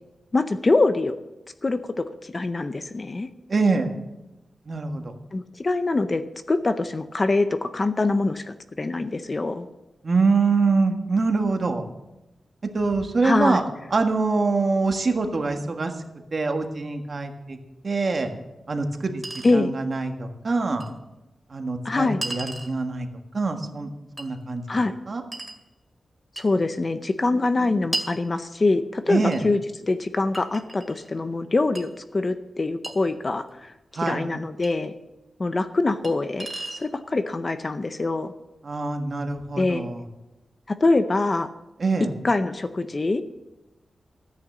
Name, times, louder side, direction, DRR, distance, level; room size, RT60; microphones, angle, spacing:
voice 1, 0.3-1.2 1.6-3.3 5.3-6.2 6.5-9.6 13.2-13.6 19.4-19.7 21.8-22.2 24.7-24.9 26.4-29.6 29.9-33.7 34.1-34.9 35.4-38.3 39.6-39.9 40.7-41.5 42.2-43.2, left 3 dB, 30° left, 10 dB, 0.6 m, -24 dB
voice 2, 3.5-3.9 4.6-5.1 10.0-11.8 12.7-13.6 13.9-16.0 16.3-17.6 17.8-18.3 18.7-19.2 19.5-20.9 21.5-23.1 23.3-23.9 24.2-24.6 25.1-25.2 29.1-29.4 33.9-34.2 38.6-40.0 41.8-42.1, right 3 dB, 40° right, 5 dB, 1.6 m, -24 dB
Chink clink, 18.2-18.3 19.2-19.6 20.8-20.9 22.2-22.7 24.2-24.3 25.3-25.6 26.4-26.5 27.9-28.2 29.3-29.4 30.3-31.1 31.8-31.9 32.8-33.0 34.6-34.7 36.0-36.1 36.4-36.9, right 2 dB, 15° right, 2.5 m, -33 dB
14.0 x 9.9 x 7.4 m, 1.0 s
wide cardioid pair, 160°, 0 cm